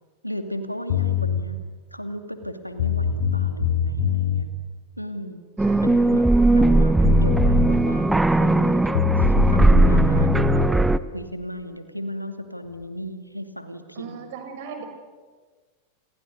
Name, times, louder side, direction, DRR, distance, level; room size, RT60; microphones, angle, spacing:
voice 1, 0.2-1.6 1.9-4.5 5.0-5.4 5.8-14.2, equal, 90° left, 8 dB, 2.4 m, -35 dB
sound 1, 0.9-1.4 2.4-2.5 2.8-4.5 6.7-6.8 7.0-7.7 8.9-10.7, left 8 dB, 55° left, 2.3 m, -23 dB
sound 2, 5.6-11.0, right 2 dB, 5° right, 0.9 m, -18 dB
voice 2, 14.0-14.9, right 6 dB, 50° right, 6 dB, 6.3 m, -37 dB
29.5 x 29.5 x 6.7 m, 1.4 s
figure-of-eight pair, 90°, 0 cm